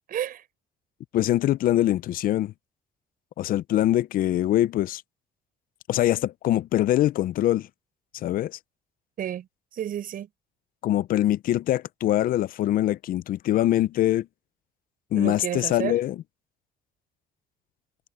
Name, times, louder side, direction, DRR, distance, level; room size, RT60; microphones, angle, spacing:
voice 1, 0.1-0.5 9.2-10.3 15.1-16.0, right 10 dB, 55° right, 6.7 m, -31 dB
voice 2, 1.1-2.5 3.4-5.0 5.9-7.7 8.1-8.6 10.8-14.3 15.1-16.2, left 13 dB, 60° left, 0.5 m, -23 dB
cardioid pair, 110°, 17 cm